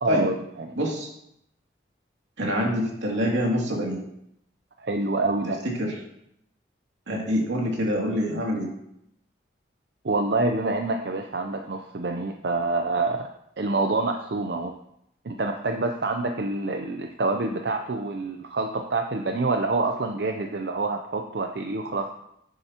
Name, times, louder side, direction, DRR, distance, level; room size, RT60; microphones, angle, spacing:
voice 1, 0.0-0.7 4.8-5.6 10.0-13.3 13.6-14.7 15.2-22.1, right 3 dB, 60° right, 4 dB, 0.6 m, -27 dB
voice 2, 0.8-1.1 2.4-4.0 5.6-5.9 7.1-8.7, equal, 85° right, -2 dB, 2.6 m, -26 dB
9.9 x 9.3 x 2.9 m, 0.77 s
head